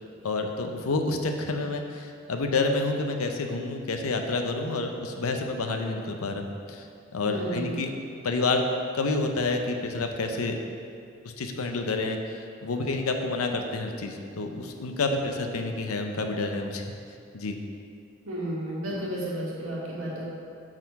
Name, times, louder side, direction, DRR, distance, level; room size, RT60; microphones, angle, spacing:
voice 1, 0.2-6.8 7.1-7.9 8.2-8.7 8.9-10.6 11.2-12.2 12.6-16.8 17.3-17.6, left 3 dB, 90° left, 5 dB, 0.6 m, -29 dB
voice 2, 7.2-7.8 18.2-20.2, equal, 75° right, -6 dB, 1.7 m, -32 dB
6.1 x 4.5 x 5.3 m, 2.4 s
head